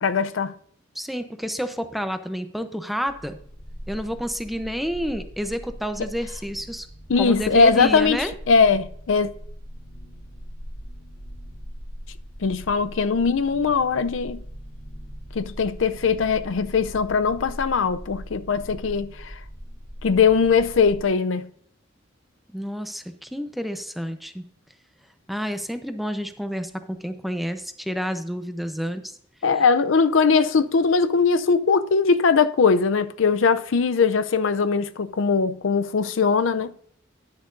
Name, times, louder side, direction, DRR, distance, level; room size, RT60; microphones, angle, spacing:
voice 1, 0.0-0.5 7.1-9.3 12.4-14.4 15.3-19.4 20.0-21.5 29.4-36.7, left 5 dB, 80° left, 0.5 m, -20 dB
voice 2, 1.0-3.4 3.9-6.9 7.2-8.3 22.5-24.4 25.3-29.1 29.6-29.7, equal, ahead, 0.7 m, -29 dB
sound 1, 3.1-21.0, equal, 40° left, 2.5 m, -40 dB
10.5 x 10.5 x 2.6 m
head